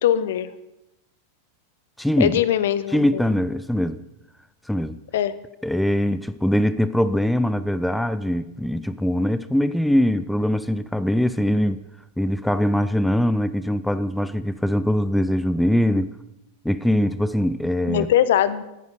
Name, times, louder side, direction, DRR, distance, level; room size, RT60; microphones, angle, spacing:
voice 1, 0.0-0.5 2.2-3.2 5.1-5.3 17.9-18.6, left 11 dB, 55° left, 0.7 m, -21 dB
voice 2, 2.0-2.3 2.9-4.0 4.7-5.0 5.6-11.8 12.2-16.1 16.6-18.1, left 1 dB, ahead, 0.4 m, -22 dB
10.0 x 9.4 x 6.2 m
figure-of-eight pair, 90°, 0 cm